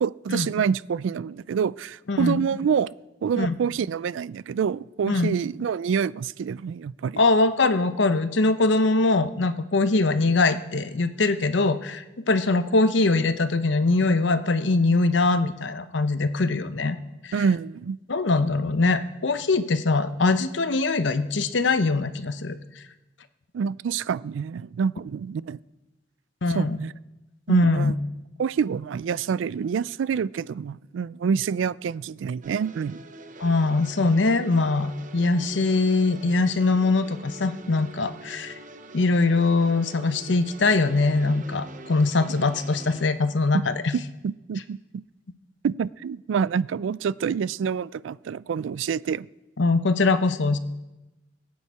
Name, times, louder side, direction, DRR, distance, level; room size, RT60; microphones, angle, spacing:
voice 1, 0.0-2.9 3.2-7.2 17.3-18.0 23.5-25.6 26.5-26.9 27.5-27.9 28.4-33.0 43.9-45.0 45.6-49.3, right 6 dB, 85° right, 21 dB, 0.3 m, -27 dB
voice 2, 2.1-2.5 3.4-3.5 5.1-5.4 7.2-17.0 17.2-17.3 18.1-22.6 26.4-26.8 27.5-27.9 33.4-38.5 38.9-43.9 49.6-50.6, left 3 dB, 70° left, 11 dB, 0.8 m, -22 dB
sound 1, 32.4-43.1, right 2 dB, 45° right, 0.8 m, -44 dB
21.5 x 8.5 x 4.7 m, 1.0 s
head